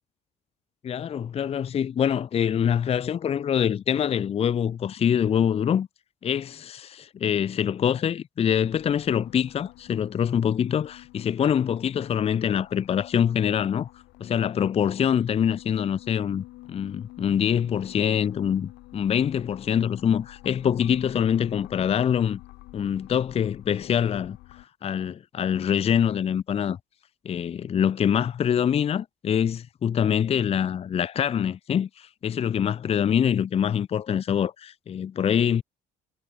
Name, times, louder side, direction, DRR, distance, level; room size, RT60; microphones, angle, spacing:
voice 1, 0.8-5.9 6.2-13.9 14.2-22.4 22.7-26.8 27.2-35.6, left 8 dB, 35° left, 0.6 m, -25 dB
sound 1, 8.6-24.7, left 19 dB, 85° left, 6.9 m, -48 dB
cardioid pair, 110°, 17 cm